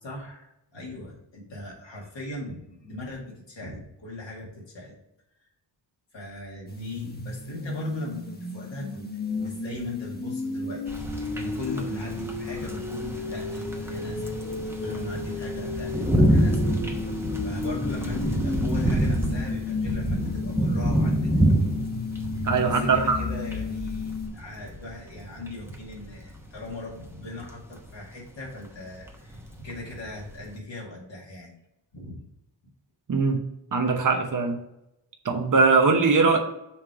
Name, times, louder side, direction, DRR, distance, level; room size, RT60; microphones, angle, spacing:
voice 1, 0.0-4.9 6.1-14.3 14.8-16.7 17.4-21.1 22.3-31.5 31.9-32.2, left 1 dB, 80° left, -3 dB, 2.2 m, -39 dB
sound 1, 6.7-24.3, left 4 dB, 20° left, 1.1 m, -33 dB
sound 2, 10.9-30.6, right 1 dB, 5° right, 0.9 m, -28 dB
voice 2, 22.4-23.2 33.1-33.4 33.7-34.6 35.2-36.4, right 4 dB, 45° right, 3 dB, 1.0 m, -21 dB
5.8 x 3.2 x 5.8 m, 0.86 s
wide cardioid pair, 100°, 43 cm